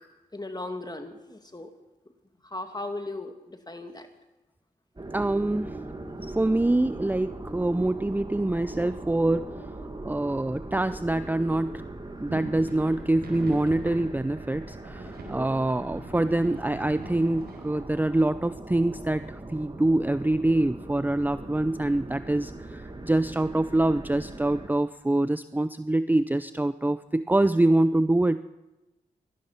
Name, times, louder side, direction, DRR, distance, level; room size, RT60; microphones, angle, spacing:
voice 1, 0.3-1.7 2.4-4.1 15.3-15.7, left 2 dB, 25° left, 6 dB, 2.4 m, -37 dB
sound 1, 5.0-24.7, right 2 dB, 25° right, 2.1 m, -40 dB
voice 2, 5.1-5.8 6.2-9.5 10.0-11.8 12.2-28.4, right 2 dB, 10° right, 13 dB, 0.5 m, -25 dB
sound 2, 12.3-17.8, right 2 dB, 80° right, 4.9 m, -42 dB
17.5 x 12.5 x 5.8 m, 1.0 s
cardioid pair, 45°, 16 cm